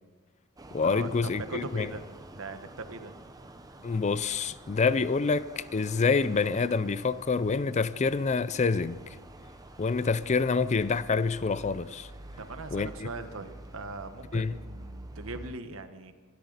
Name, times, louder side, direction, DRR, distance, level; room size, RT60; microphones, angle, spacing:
sound 1, 0.6-15.5, right 1 dB, 15° right, 0.9 m, -48 dB
voice 1, 0.7-1.9 3.8-9.0 9.8-12.1 12.7-13.1 14.3-14.5, left 4 dB, 35° left, 0.4 m, -27 dB
voice 2, 1.5-2.0 2.3-3.1 12.4-16.1, right 3 dB, 70° right, 1.3 m, -40 dB
24.0 x 13.0 x 4.0 m
head